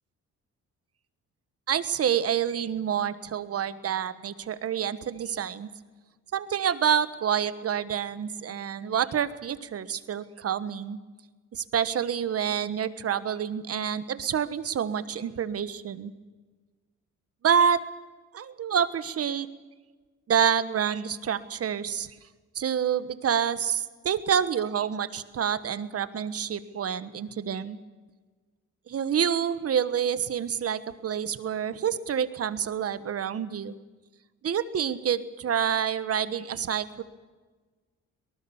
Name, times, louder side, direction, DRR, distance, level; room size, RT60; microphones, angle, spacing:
voice 1, 1.7-5.7 6.3-11.0 11.5-16.1 17.4-17.8 18.3-19.5 20.3-22.1 22.5-27.8 28.9-33.7 34.4-37.0, right 8 dB, 50° right, 14 dB, 1.3 m, -28 dB
23.5 x 19.0 x 7.2 m, 1.4 s
cardioid pair, 90°, 30 cm